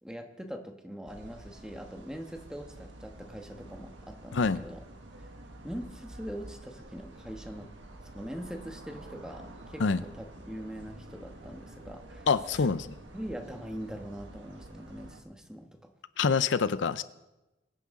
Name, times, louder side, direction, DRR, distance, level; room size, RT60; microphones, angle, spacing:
voice 1, 0.0-4.8 5.6-7.7 8.1-12.3 12.6-12.7 13.1-15.9, equal, 5° right, 4 dB, 1.3 m, -42 dB
sound 1, 1.1-15.2, right 1 dB, 80° right, 1.6 m, -49 dB
voice 2, 4.3-4.6 9.8-10.0 12.3-12.9 16.2-17.0, left 5 dB, 85° left, 14 dB, 0.6 m, -26 dB
22.5 x 9.7 x 3.7 m, 0.99 s
head